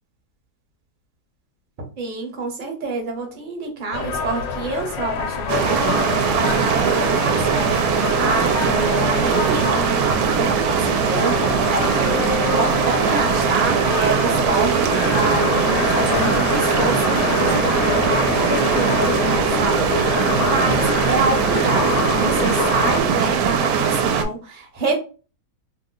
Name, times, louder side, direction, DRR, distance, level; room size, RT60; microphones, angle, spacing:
voice 1, 2.0-25.0, right 3 dB, 40° right, 2 dB, 0.8 m, -27 dB
sound 1, 3.9-23.0, left 6 dB, 70° left, 1.1 m, -26 dB
sound 2, 5.5-24.2, right 7 dB, 75° right, 1.0 m, -20 dB
3.2 x 2.0 x 3.7 m, 0.34 s
omnidirectional pair, 1.7 m